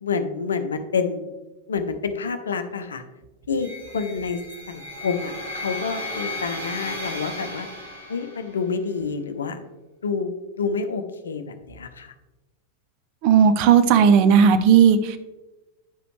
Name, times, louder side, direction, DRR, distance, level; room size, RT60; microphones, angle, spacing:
voice 1, 0.0-1.3 1.7-3.0 3.5-4.4 4.7-7.7 8.1-9.6 10.0-12.1, left 5 dB, 70° left, 9 dB, 0.6 m, -28 dB
sound 1, 3.6-8.7, left 1 dB, 70° right, 1.5 m, -35 dB
voice 2, 13.2-15.2, right 7 dB, 45° right, 10 dB, 0.6 m, -15 dB
10.0 x 4.9 x 3.1 m, 1.1 s
figure-of-eight pair, 90°, 0 cm